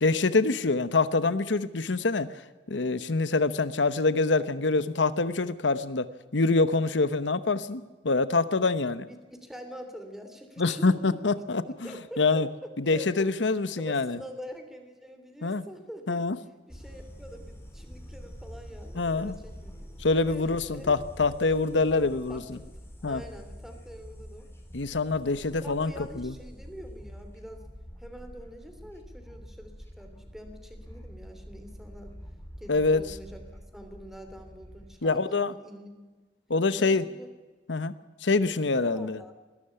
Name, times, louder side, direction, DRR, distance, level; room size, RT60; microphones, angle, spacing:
voice 1, 0.0-2.3 2.7-6.1 6.3-9.0 10.6-11.9 12.2-12.5 12.8-14.2 15.4-15.6 16.1-16.4 18.9-19.4 20.0-22.6 23.0-23.2 24.7-26.3 32.7-33.0 35.0-35.5 36.5-37.0 37.7-37.9 38.2-39.2, left 3 dB, 85° left, 14 dB, 1.0 m, -25 dB
voice 2, 9.0-11.2 11.6-13.3 13.7-16.2 16.7-19.8 20.1-21.0 21.7-22.7 23.0-24.5 25.5-27.6 28.0-32.1 32.6-36.1 36.7-37.3 38.4-39.3, equal, ahead, 6 dB, 3.1 m, -45 dB
sound 1, 16.7-35.0, equal, 15° left, 3.9 m, -46 dB
21.0 x 12.5 x 10.0 m, 1.2 s
head